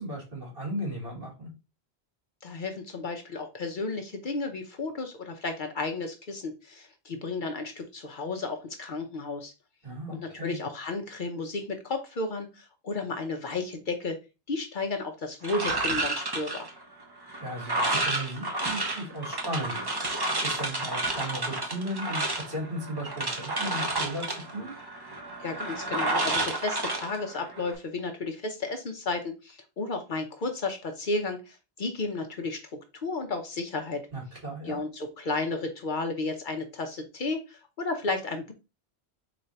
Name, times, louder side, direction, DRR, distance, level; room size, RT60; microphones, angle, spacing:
voice 1, 0.0-1.5 9.8-10.6 17.4-19.8 20.4-24.2 24.5-24.7 34.1-34.8, equal, 60° right, -4 dB, 2.5 m, -36 dB
voice 2, 2.4-9.5 10.1-14.2 14.5-16.7 25.4-32.6 33.0-34.0 34.6-38.5, left 3 dB, 55° left, 5 dB, 0.8 m, -33 dB
sound 1, 15.4-27.7, right 2 dB, 25° right, 0.8 m, -31 dB
3.9 x 2.6 x 4.3 m, 0.29 s
omnidirectional pair, 1.1 m